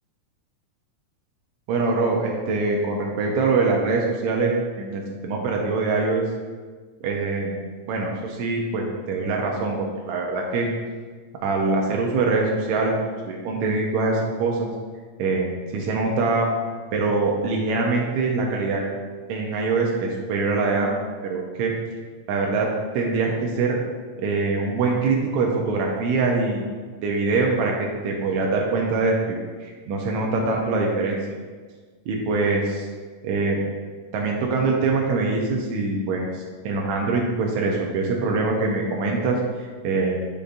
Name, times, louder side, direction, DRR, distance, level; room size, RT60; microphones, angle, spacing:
voice 1, 1.7-6.2 7.0-7.6 7.9-10.7 11.3-14.7 15.2-16.5 16.9-18.8 19.3-20.9 21.2-21.7 22.3-22.7 22.9-23.8 24.2-26.6 27.0-27.7 28.0-31.4 32.1-32.9 33.2-33.6 34.1-40.3, right 3 dB, 80° right, -1 dB, 2.0 m, -23 dB
8.4 x 5.2 x 2.5 m, 1.5 s
omnidirectional pair, 3.3 m